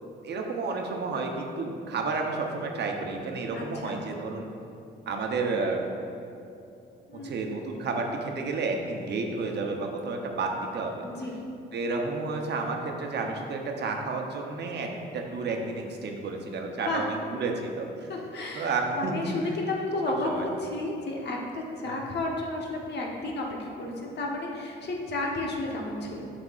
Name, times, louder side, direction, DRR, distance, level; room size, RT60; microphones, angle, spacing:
voice 1, 0.2-4.5 5.1-5.8 7.2-11.1 11.7-17.1 17.4-17.9 18.5-19.3 20.1-20.4 21.8-21.9, right 3 dB, 60° right, 2 dB, 0.8 m, -31 dB
voice 2, 3.5-4.0 7.1-7.3 11.0-11.4 16.8-17.0 18.1-20.3 20.6-26.3, left 2 dB, 60° left, -1 dB, 1.1 m, -32 dB
8.0 x 5.9 x 2.5 m, 2.7 s
cardioid pair, 90°, 20 cm